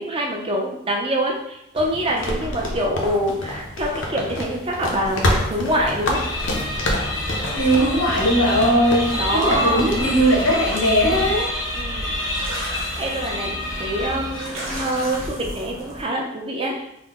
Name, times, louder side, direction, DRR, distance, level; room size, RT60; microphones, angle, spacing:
voice 1, 0.0-6.2 9.2-9.8 11.0-11.4 11.7-12.1 13.0-13.5 13.8-16.9, equal, 25° right, 0 dB, 0.5 m, -25 dB
sound 1, 1.7-10.5, left 1 dB, 60° left, 0.5 m, -28 dB
sound 2, 4.6-16.0, equal, 80° right, 0.9 m, -36 dB
sound 3, 6.1-14.8, left 1 dB, 15° left, 0.6 m, -28 dB
voice 2, 7.5-11.5, equal, 80° left, -2 dB, 1.0 m, -19 dB
3.7 x 2.0 x 3.5 m, 0.80 s
head